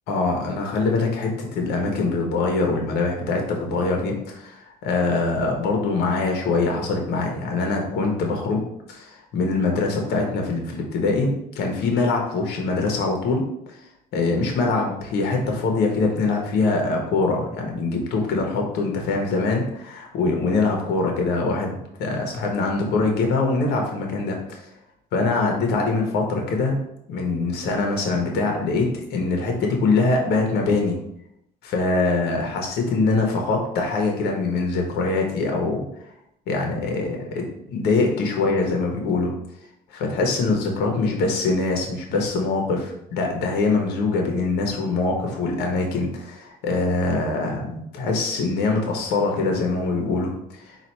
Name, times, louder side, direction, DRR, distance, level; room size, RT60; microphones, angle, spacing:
voice 1, 0.1-13.4 14.1-24.6 25.1-26.8 27.1-31.0 31.6-35.8 36.5-39.3 39.9-50.8, left 3 dB, 80° left, 1 dB, 1.0 m, -23 dB
4.1 x 2.5 x 4.4 m, 0.78 s
cardioid pair, 110°, 17 cm